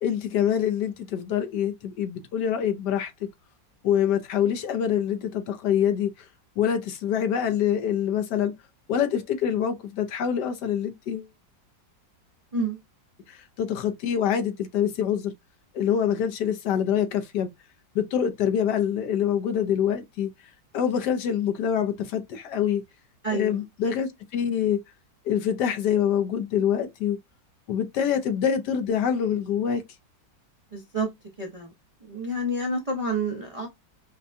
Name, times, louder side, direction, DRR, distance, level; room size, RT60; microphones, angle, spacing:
voice 1, 0.0-3.3 3.8-6.1 6.6-8.5 8.9-11.3 13.3-15.3 15.7-17.5 17.9-20.3 20.7-22.8 23.3-24.8 25.2-27.2 27.7-29.8, left 9 dB, 70° left, 1.2 m, -25 dB
voice 2, 23.2-23.6 30.7-31.1 31.4-31.7 32.1-33.7, right 1 dB, 35° right, 0.5 m, -28 dB
5.3 x 2.2 x 2.5 m
omnidirectional pair, 2.0 m